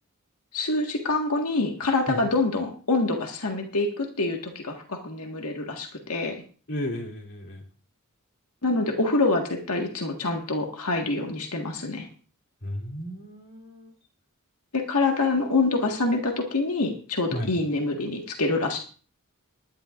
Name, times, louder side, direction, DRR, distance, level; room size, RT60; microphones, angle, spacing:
voice 1, 0.5-6.4 8.6-12.1 14.7-18.8, left 3 dB, 85° left, 2 dB, 1.7 m, -26 dB
voice 2, 6.7-7.6 12.6-13.9 15.8-15.9 17.3-17.5, left 1 dB, 60° left, -1 dB, 3.2 m, -34 dB
20.0 x 11.0 x 2.5 m, 0.40 s
head